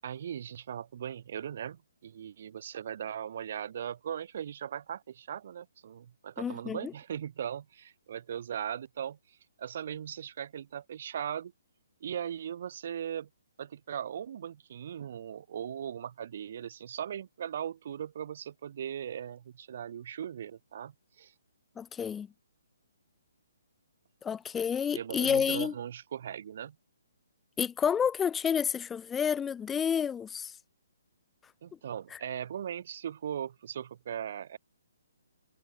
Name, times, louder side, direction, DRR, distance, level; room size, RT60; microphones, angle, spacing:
voice 1, 0.0-11.5 12.0-13.3 13.6-21.3 24.9-26.8 31.6-34.6, right 9 dB, 50° right, 7.0 m, -39 dB
voice 2, 6.4-6.9 21.8-22.3 24.2-25.7 27.6-30.5, left 7 dB, 10° left, 2.6 m, -29 dB
hypercardioid pair, 160°, 0 cm